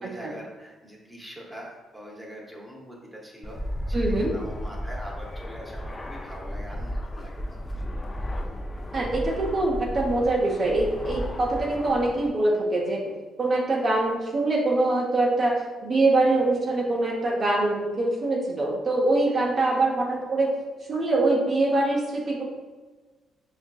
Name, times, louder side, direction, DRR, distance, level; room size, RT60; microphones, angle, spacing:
voice 1, 0.0-3.6 3.9-7.8 19.3-19.4, equal, 5° right, -3 dB, 0.8 m, -43 dB
Fixed-wing aircraft airplane, 3.4-12.3, equal, 25° left, 0.3 m, -34 dB
voice 2, 3.9-4.3 8.9-13.0 13.4-15.5 15.8-20.5 20.9-22.4, right 2 dB, 40° right, -2 dB, 0.7 m, -24 dB
5.0 x 2.5 x 2.3 m, 1.3 s
cardioid pair, 90°, 0 cm